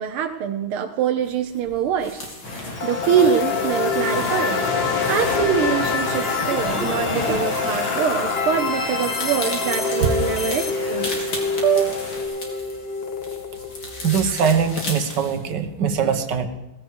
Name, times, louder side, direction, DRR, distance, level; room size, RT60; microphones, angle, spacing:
voice 1, 0.0-2.3 2.8-11.3 12.5-12.6, right 8 dB, 90° right, 6 dB, 1.8 m, -24 dB
sound 1, 1.2-15.5, left 1 dB, 50° left, 3.3 m, -37 dB
sound 2, 2.4-12.2, left 2 dB, 70° left, 3.8 m, -31 dB
sound 3, 2.8-14.6, left 5 dB, 35° left, 1.2 m, -26 dB
voice 2, 11.6-12.0 14.0-16.5, right 7 dB, 60° right, 7 dB, 1.8 m, -21 dB
18.0 x 16.0 x 4.7 m, 1.0 s
omnidirectional pair, 2.3 m